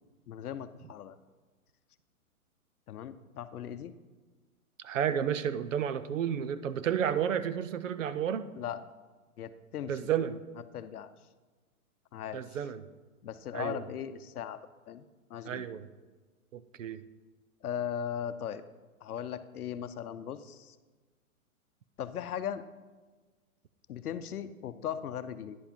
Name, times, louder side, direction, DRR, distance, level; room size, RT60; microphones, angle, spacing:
voice 1, 0.3-1.2 2.9-3.9 8.5-8.8 9.4-10.1 10.7-11.1 12.1-12.6 13.2-14.6 14.9-15.0 15.3-15.7 17.6-18.6 19.0-20.8 22.0-22.6 23.9-25.6, left 9 dB, 80° left, 12 dB, 0.7 m, -38 dB
voice 2, 4.8-8.5 9.9-10.4 12.3-12.9 13.5-13.8 15.5-15.9 16.5-17.0, right 9 dB, 60° right, 14 dB, 0.6 m, -31 dB
10.0 x 4.9 x 5.3 m, 1.3 s
hypercardioid pair, 175°, 44 cm